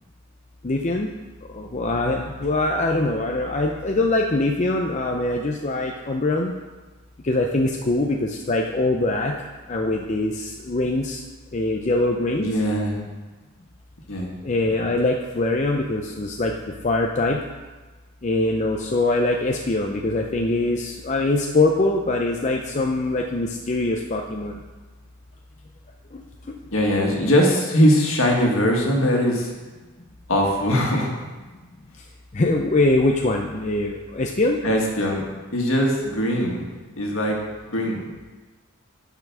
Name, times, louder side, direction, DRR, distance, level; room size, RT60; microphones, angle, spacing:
voice 1, 0.6-1.1 1.5-6.5 7.2-9.4 9.7-11.2 11.5-12.5 14.4-16.6 16.8-17.4 18.2-24.6 26.1-26.7 32.0-32.1 32.3-34.6, left 2 dB, 30° left, 1 dB, 0.5 m, -23 dB
voice 2, 12.4-13.0 14.1-14.3 26.7-29.5 30.3-31.1 34.6-35.2 35.5-36.6 37.0-37.4 37.7-38.0, equal, 65° left, -1 dB, 1.9 m, -20 dB
10.5 x 5.7 x 6.1 m, 1.3 s
head